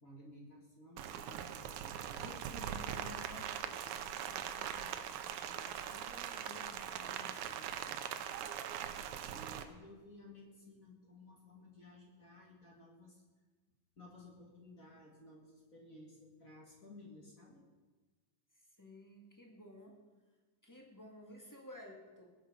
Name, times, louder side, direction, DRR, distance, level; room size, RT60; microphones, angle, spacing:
voice 1, 0.0-8.6 9.0-13.2 14.0-17.6, left 2 dB, 35° left, -1 dB, 1.6 m, -56 dB
Rain, 1.0-9.6, right 9 dB, 75° right, 1.9 m, -41 dB
voice 2, 18.8-20.1 20.6-22.3, left 1 dB, 10° left, 0 dB, 0.9 m, -54 dB
19.5 x 8.5 x 5.2 m, 1.3 s
omnidirectional pair, 3.9 m